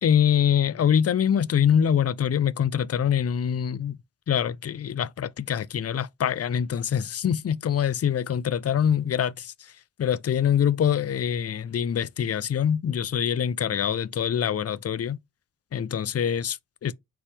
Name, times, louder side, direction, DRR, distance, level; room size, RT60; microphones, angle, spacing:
voice 1, 0.0-4.0 4.3-9.5 10.0-15.2 15.7-16.9, left 8 dB, 45° left, 0.4 m, -24 dB
4.5 x 3.3 x 3.3 m
cardioid pair, 45°, 36 cm